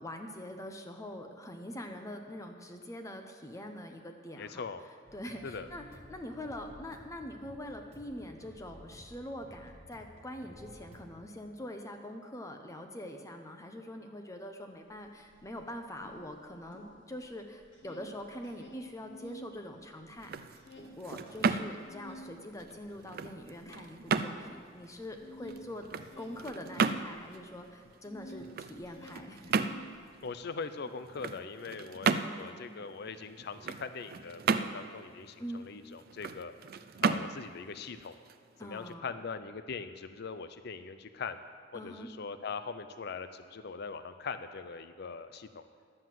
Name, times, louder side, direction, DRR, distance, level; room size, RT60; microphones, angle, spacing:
voice 1, 0.0-4.7 5.1-25.9 26.2-29.6 32.0-32.7 35.4-35.6 38.6-39.1 41.7-42.1, left 1 dB, 15° left, 4 dB, 0.8 m, -44 dB
voice 2, 4.4-4.8 5.4-5.7 30.2-36.5 37.0-38.1 38.6-41.4 41.7-45.6, left 5 dB, 60° left, 11 dB, 0.5 m, -41 dB
sound 1, 5.1-11.2, equal, 35° right, 1.3 m, -54 dB
sound 2, 15.0-15.1 15.3-17.3 17.6-19.5 19.8-28.5 28.8-30.3, left 1 dB, 80° left, 2.2 m, -50 dB
sound 3, 20.1-38.9, right 5 dB, 55° right, 0.4 m, -35 dB
11.0 x 7.6 x 7.6 m, 2.2 s
head